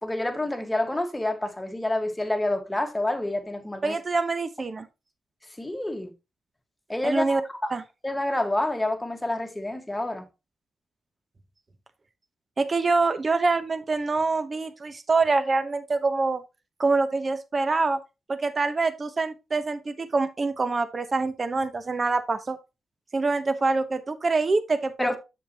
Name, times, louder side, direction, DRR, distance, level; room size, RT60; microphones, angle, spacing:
voice 1, 0.0-4.0 5.6-6.1 6.9-7.7 8.0-10.3 25.0-25.2, left 1 dB, 15° left, 1.7 m, -28 dB
voice 2, 3.8-4.9 7.0-7.4 7.7-7.8 12.6-16.4 16.8-18.0 18.3-22.6 23.1-25.2, right 3 dB, 40° right, 1.0 m, -25 dB
7.2 x 6.5 x 3.0 m
supercardioid pair, 55°, 0 cm